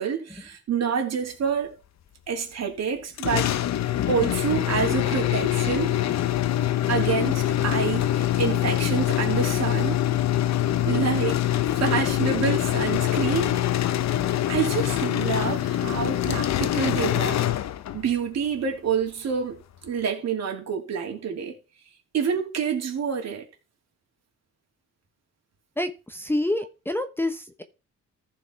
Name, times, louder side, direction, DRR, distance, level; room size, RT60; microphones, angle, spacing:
voice 1, 0.0-1.8 2.3-3.5 4.1-6.0 6.9-9.9 10.9-11.5 11.7-13.5 13.8-13.9 14.5-17.4 17.9-21.5 22.1-23.5, right 7 dB, 60° right, 2.9 m, -27 dB
sound 1, 3.2-18.1, left 13 dB, 60° left, 0.8 m, -24 dB
voice 2, 25.8-27.6, left 1 dB, 5° left, 1.0 m, -28 dB
14.5 x 4.9 x 4.6 m
cardioid pair, 90°, 30 cm